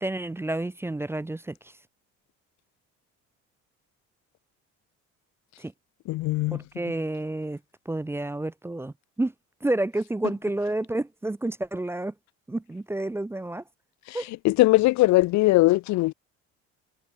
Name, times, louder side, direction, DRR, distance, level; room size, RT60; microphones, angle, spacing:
voice 1, 0.0-1.7 5.6-5.7 6.5-7.6 7.9-9.3 9.6-12.1 12.5-13.6 14.1-14.3, right 2 dB, 10° right, 0.6 m, -30 dB
voice 2, 6.1-6.6 14.1-14.2 14.4-16.1, left 19 dB, 65° left, 0.6 m, -20 dB
cardioid pair, 120°, 31 cm